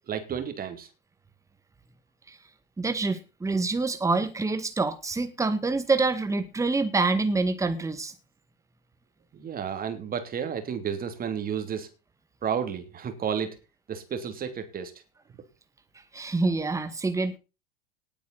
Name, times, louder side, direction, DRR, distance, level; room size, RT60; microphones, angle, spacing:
voice 1, 0.1-0.9 9.3-11.9 12.4-13.6 13.9-14.9, right 7 dB, 30° right, 3.1 m, -32 dB
voice 2, 2.8-8.1 16.1-17.4, right 3 dB, 10° right, 2.0 m, -26 dB
19.0 x 8.9 x 4.2 m
figure-of-eight pair, 85°, 30 cm